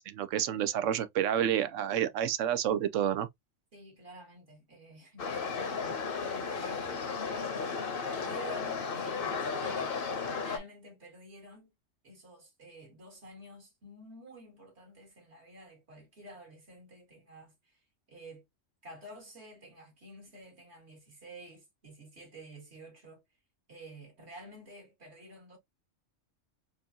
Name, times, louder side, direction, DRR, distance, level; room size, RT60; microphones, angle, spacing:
voice 1, 0.0-3.3, right 10 dB, 85° right, 1.0 m, -29 dB
voice 2, 3.7-7.5 8.1-10.2 10.4-11.7 12.0-18.5 18.8-23.2 23.7-25.6, right 1 dB, 60° right, 2.3 m, -50 dB
sound 1, 5.2-10.6, left 5 dB, 50° left, 1.0 m, -34 dB
4.4 x 2.6 x 2.7 m
omnidirectional pair, 1.3 m